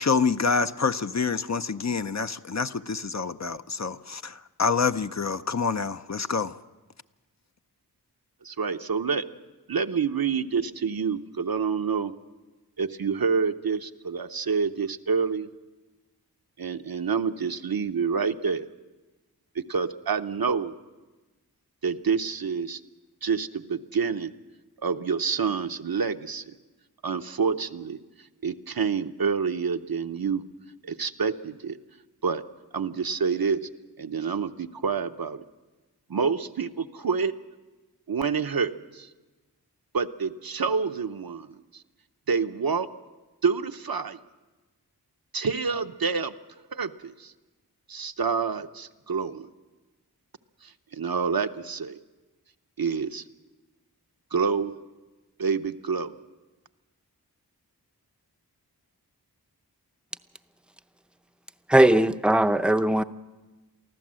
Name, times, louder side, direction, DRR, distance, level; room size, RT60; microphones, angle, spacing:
voice 1, 0.0-6.6, left 5 dB, 45° left, 10 dB, 0.6 m, -27 dB
voice 2, 8.4-9.2 9.7-12.1 12.8-15.5 16.6-18.7 19.5-20.7 21.8-22.8 23.2-24.3 24.8-26.6 27.0-28.0 28.4-30.4 30.8-31.8 32.2-32.4 32.7-33.6 34.0-35.4 36.1-37.3 38.1-39.1 39.9-41.8 42.3-42.9 43.4-44.2 45.3-46.3 46.7-47.3 47.9-49.5 50.6-52.0 52.8-53.2 54.3-54.7 55.4-56.1, right 5 dB, 65° right, 8 dB, 0.8 m, -27 dB
voice 3, 61.7-63.0, right 1 dB, 5° right, 10 dB, 0.6 m, -19 dB
24.0 x 15.0 x 7.5 m, 1.2 s
wide cardioid pair, 50°, 39 cm